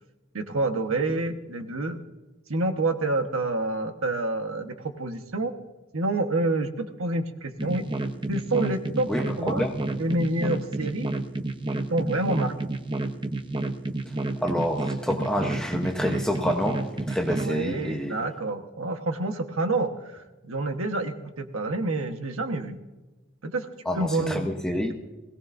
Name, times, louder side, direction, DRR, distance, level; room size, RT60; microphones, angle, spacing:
voice 1, 0.3-2.0 2.5-5.5 5.9-7.8 8.3-9.1 9.4-9.7 10.0-11.1 11.9-12.5 17.3-22.8 23.4-24.5, right 2 dB, 90° right, 6 dB, 1.3 m, -28 dB
sound 1, 7.6-17.5, right 2 dB, 25° right, 0.9 m, -30 dB
voice 2, 9.1-9.8 14.4-16.8 17.1-18.2 23.8-24.9, equal, 5° left, 1 dB, 0.9 m, -28 dB
21.5 x 17.0 x 2.7 m, 1.1 s
head